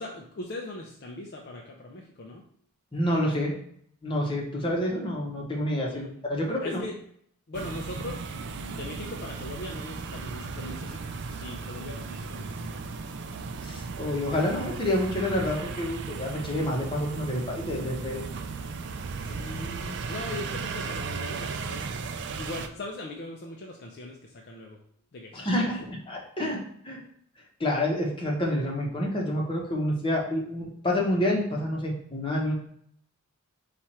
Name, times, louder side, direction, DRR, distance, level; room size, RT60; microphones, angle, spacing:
voice 1, 0.0-2.4 5.8-6.2 6.6-6.9 7.5-12.8 19.2-21.9 22.3-24.8 25.1-25.9, left 2 dB, 50° left, 0 dB, 0.5 m, -40 dB
voice 2, 2.9-3.5 4.0-6.8 13.6-18.2 25.3-25.8 26.1-27.0 27.6-32.5, left 1 dB, 25° left, -2 dB, 1.0 m, -28 dB
sound 1, 7.5-22.7, right 4 dB, 55° right, 0.4 m, -36 dB
4.4 x 2.5 x 4.3 m, 0.66 s
head